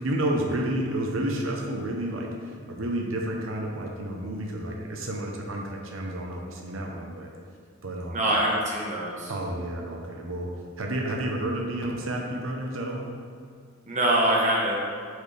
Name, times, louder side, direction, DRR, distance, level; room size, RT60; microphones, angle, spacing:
voice 1, 0.0-7.3 7.8-8.3 9.3-10.5 10.8-13.1, right 1 dB, 85° right, 0 dB, 0.8 m, -30 dB
voice 2, 8.1-9.3 13.9-14.8, right 1 dB, 40° right, -4 dB, 1.0 m, -24 dB
7.9 x 4.7 x 3.3 m, 2.1 s
head